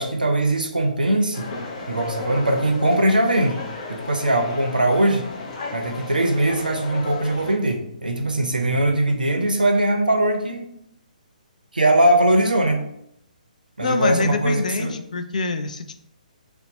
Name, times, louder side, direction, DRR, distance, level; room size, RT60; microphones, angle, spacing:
voice 1, 0.0-1.5 1.9-5.2 5.7-10.7 11.7-12.9 13.8-14.9, right 1 dB, 85° right, 4 dB, 0.5 m, -21 dB
sound 1, 1.3-7.5, left 3 dB, 40° left, 0.7 m, -34 dB
voice 2, 13.8-15.9, left 4 dB, 60° left, 8 dB, 0.3 m, -25 dB
2.7 x 2.1 x 4.0 m, 0.75 s
figure-of-eight pair, 135°, 5 cm